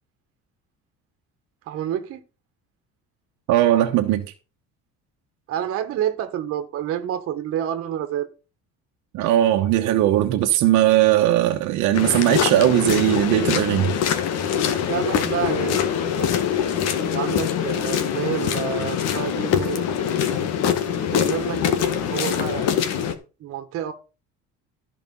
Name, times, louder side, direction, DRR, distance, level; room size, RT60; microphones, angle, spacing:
voice 1, 1.7-2.2 5.5-8.3 14.9-16.3 17.1-19.9 21.0-22.9 23.4-23.9, right 10 dB, 50° right, 1.6 m, -29 dB
voice 2, 3.5-4.3 9.1-13.9, right 13 dB, 75° right, 1.3 m, -19 dB
sound 1, 11.9-23.1, left 8 dB, 60° left, 1.8 m, -23 dB
14.0 x 5.3 x 5.5 m
cardioid pair, 165°, 29 cm